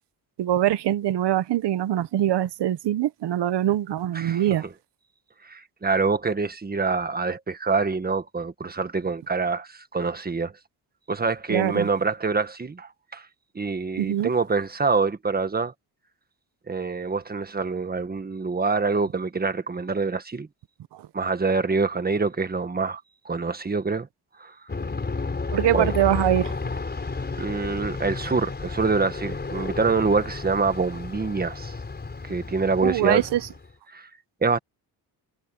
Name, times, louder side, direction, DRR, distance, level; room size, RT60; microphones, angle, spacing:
voice 1, 0.4-4.7 11.5-11.9 14.0-14.3 20.9-21.1 25.5-26.6 32.8-33.4, right 12 dB, 85° right, 1.3 m, -23 dB
voice 2, 5.4-10.5 11.1-13.3 13.5-15.7 16.7-20.5 21.1-23.0 23.2-24.1 24.4-24.5 25.7-25.9 27.4-31.7 32.2-33.2 33.9-34.1 34.4-34.6, right 4 dB, 25° right, 1.6 m, -25 dB
Aircraft, 24.7-33.7, left 4 dB, 25° left, 5.0 m, -32 dB
cardioid pair, 135°, 41 cm